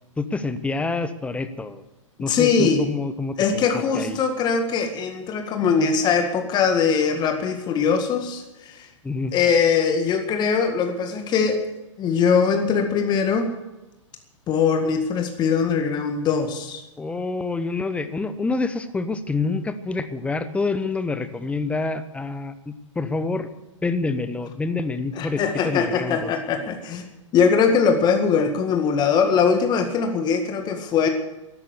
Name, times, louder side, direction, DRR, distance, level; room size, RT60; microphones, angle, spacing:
voice 1, 0.2-1.8 2.2-3.7 3.9-4.2 9.0-9.3 17.0-23.5 23.8-26.3, left 3 dB, 5° left, 12 dB, 1.0 m, -27 dB
voice 2, 2.3-2.9 3.4-8.9 9.3-11.6 12.0-13.5 14.5-16.8 25.1-27.0 27.3-31.1, left 6 dB, 25° left, 5 dB, 1.9 m, -21 dB
13.5 x 12.0 x 8.2 m, 1.0 s
figure-of-eight pair, 105°, 17 cm